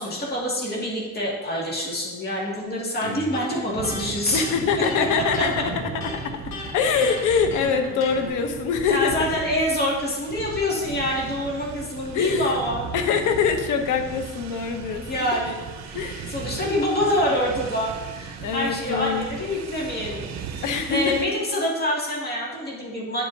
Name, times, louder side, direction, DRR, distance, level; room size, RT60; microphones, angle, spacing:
voice 1, 0.0-4.5 8.9-12.9 15.0-20.3 20.9-23.3, left 1 dB, 35° left, -4 dB, 2.1 m, -26 dB
Electric guitar, 3.0-8.3, left 3 dB, 65° left, 1.5 m, -36 dB
sound 1, 3.7-21.3, right 6 dB, 65° right, 0.7 m, -37 dB
voice 2, 4.3-5.5 6.1-9.1 12.1-12.6 12.9-15.2 15.9-16.4 18.4-19.3 20.6-21.3, left 6 dB, 85° left, 6 dB, 0.9 m, -24 dB
10.0 x 4.8 x 2.7 m, 1.2 s
cardioid pair, 90°, 30 cm